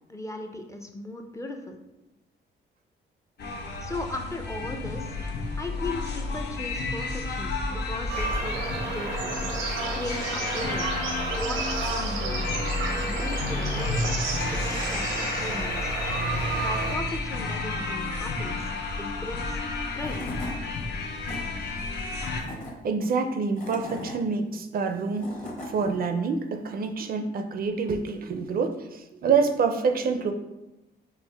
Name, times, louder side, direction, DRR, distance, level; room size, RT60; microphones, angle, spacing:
voice 1, 0.1-1.8 3.8-5.2 5.6-9.4 9.9-10.9 11.3-12.5 12.9-14.0 14.5-16.0 16.5-19.6 20.0-20.3, left 2 dB, 15° left, 3 dB, 0.4 m, -37 dB
sound 1, 3.4-22.4, left 3 dB, 60° left, 0.7 m, -31 dB
sound 2, 8.1-17.0, right 4 dB, 90° right, 0.6 m, -32 dB
Tools / Wood, 19.6-19.7 20.0-20.6 21.0-21.4 22.1-22.7 23.3-24.2 24.9-25.7, left 1 dB, 40° left, 1.1 m, -38 dB
voice 2, 22.8-25.4 25.7-30.3, right 5 dB, 50° right, 7 dB, 0.4 m, -27 dB
4.5 x 2.4 x 3.3 m, 0.96 s
cardioid pair, 90°, 20 cm